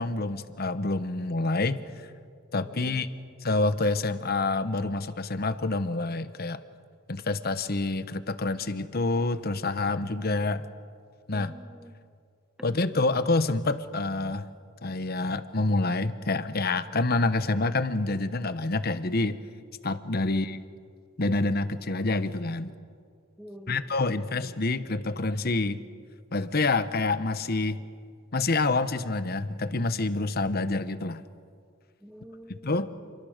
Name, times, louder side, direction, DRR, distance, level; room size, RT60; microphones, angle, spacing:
voice 1, 0.0-2.1 2.5-3.1 3.4-6.6 7.1-10.6 11.3-11.5 12.6-14.5 14.8-19.4 19.8-20.6 21.2-22.7 23.7-25.8 26.3-27.8 28.3-31.2 32.6-32.9, left 3 dB, 50° left, 12 dB, 1.0 m, -27 dB
voice 2, 2.6-3.1 11.3-11.9 20.2-20.5 23.4-24.3 32.0-33.1, equal, 5° right, 7 dB, 1.2 m, -48 dB
28.5 x 23.0 x 6.6 m, 2.2 s
head